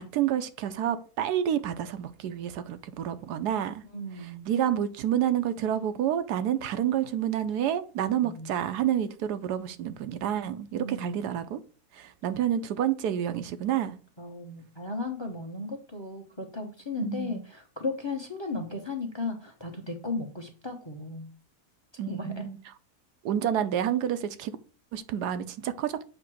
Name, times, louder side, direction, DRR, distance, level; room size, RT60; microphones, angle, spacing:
voice 1, 0.0-3.8 4.2-11.6 11.9-14.0 17.0-17.4 22.0-22.6 23.2-24.6 24.9-26.0, right 10 dB, 85° right, 1.2 m, -29 dB
voice 2, 3.9-4.5 8.2-8.5 10.8-11.3 14.2-21.3 22.1-22.4, left 3 dB, 20° left, 0.9 m, -35 dB
7.6 x 2.9 x 6.1 m
omnidirectional pair, 1.7 m